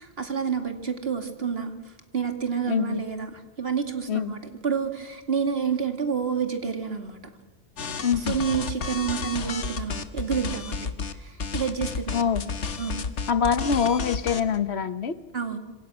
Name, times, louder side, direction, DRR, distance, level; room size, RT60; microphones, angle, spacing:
voice 1, 0.0-7.2 8.1-12.2 12.8-13.0 15.3-15.6, right 6 dB, 60° right, 6 dB, 2.6 m, -29 dB
voice 2, 2.7-3.0 4.1-4.3 8.0-8.4 12.1-12.4 13.3-15.1, left 7 dB, 70° left, 13 dB, 1.4 m, -24 dB
sound 1, 7.8-11.1 11.4-14.6, left 5 dB, 85° left, 1.5 m, -32 dB
26.5 x 26.5 x 6.2 m, 1.2 s
omnidirectional pair, 1.1 m